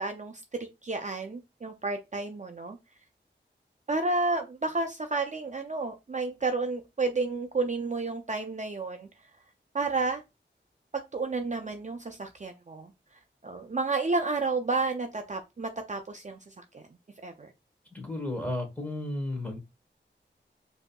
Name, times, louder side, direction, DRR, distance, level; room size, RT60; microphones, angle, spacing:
voice 1, 0.0-2.8 3.9-9.1 9.7-10.2 10.9-12.9 13.4-16.4 16.7-16.8 17.2-17.5, right 3 dB, 40° right, 0.5 m, -31 dB
voice 2, 17.9-19.6, left 1 dB, 10° left, 1.3 m, -33 dB
4.9 x 2.7 x 2.3 m
wide cardioid pair, 70°, 19 cm